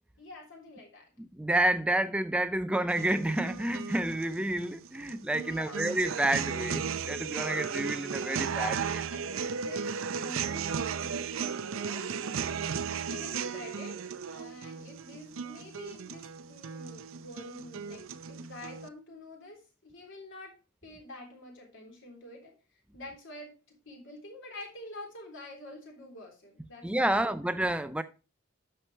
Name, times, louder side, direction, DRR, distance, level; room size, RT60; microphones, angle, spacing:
voice 1, 0.2-1.1 5.3-6.0 8.6-12.2 13.0-22.6 22.9-23.5 23.9-27.1, left 1 dB, 65° left, 3.5 m, -47 dB
voice 2, 1.3-9.0 26.8-28.0, right 1 dB, 5° right, 0.4 m, -29 dB
sound 1, 2.9-18.9, right 6 dB, 70° right, 0.6 m, -35 dB
11.0 x 6.7 x 3.2 m
head